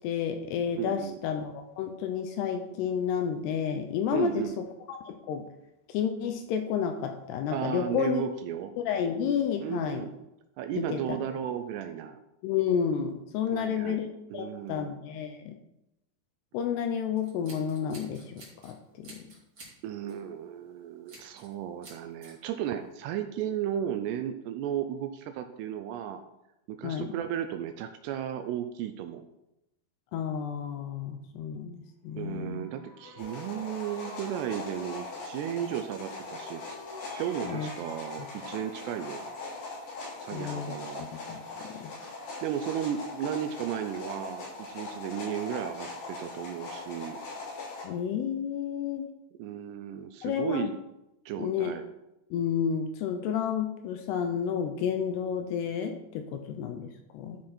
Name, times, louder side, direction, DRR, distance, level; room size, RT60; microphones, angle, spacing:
voice 1, 0.0-5.4 5.9-8.2 8.8-10.1 10.8-11.2 12.4-14.1 14.3-15.6 16.5-19.3 26.8-27.1 30.1-32.7 37.4-37.7 40.3-41.9 47.8-49.1 50.2-50.7 51.4-51.7 52.3-56.9 57.1-57.4, left 7 dB, 80° left, 6 dB, 2.5 m, -31 dB
voice 2, 0.8-1.2 4.1-4.5 7.5-8.7 9.6-10.1 10.6-12.2 13.5-14.0 14.3-14.9 19.8-26.2 26.7-29.2 32.2-36.6 37.2-39.2 40.2-41.1 42.4-47.2 49.4-50.7 51.3-51.8, right 10 dB, 80° right, 8 dB, 2.5 m, -34 dB
Scissors, 17.2-18.7 19.0-19.8 20.1-20.3 21.1-21.5 21.8-22.3, right 2 dB, 30° right, 2.7 m, -50 dB
sound 1, 32.2-35.2 36.1-39.3, left 1 dB, 15° left, 2.3 m, -49 dB
sound 2, 33.2-47.8, left 3 dB, 65° left, 5.2 m, -41 dB
11.5 x 6.2 x 4.3 m, 0.89 s
omnidirectional pair, 5.2 m